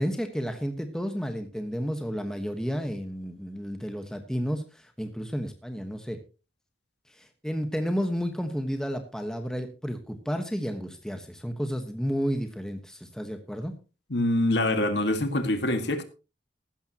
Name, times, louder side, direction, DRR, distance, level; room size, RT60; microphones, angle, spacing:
voice 1, 0.0-6.2 7.1-13.7, equal, 5° left, 6 dB, 1.2 m, -31 dB
voice 2, 14.1-16.0, left 1 dB, 65° left, 7 dB, 1.9 m, -25 dB
15.0 x 12.5 x 2.9 m, 0.32 s
head